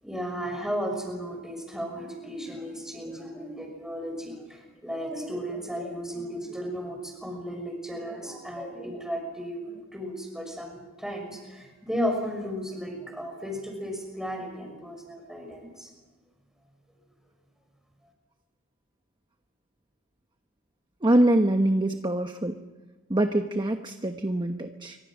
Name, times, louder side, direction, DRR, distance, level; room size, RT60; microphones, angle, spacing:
voice 1, 0.0-15.9, equal, ahead, 2 dB, 6.0 m, -34 dB
voice 2, 21.0-22.6 23.1-25.0, right 1 dB, 25° right, 6 dB, 1.1 m, -24 dB
28.0 x 25.0 x 6.3 m, 1.2 s
head